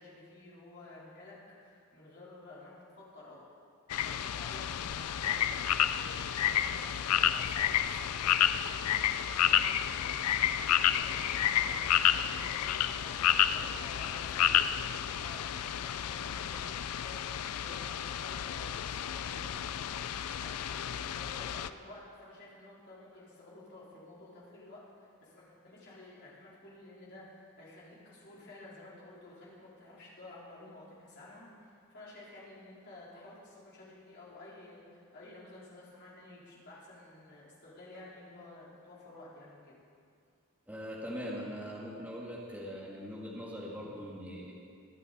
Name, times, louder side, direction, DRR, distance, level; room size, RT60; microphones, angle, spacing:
voice 1, 0.0-3.4 4.0-10.2 10.9-39.7 43.8-44.0, left 2 dB, 50° left, -7 dB, 4.1 m, -52 dB
sound 1, 3.9-21.7, left 10 dB, 80° left, 0.4 m, -30 dB
voice 2, 40.7-44.5, equal, 5° right, -5 dB, 1.8 m, -41 dB
23.0 x 9.0 x 4.2 m, 2.2 s
head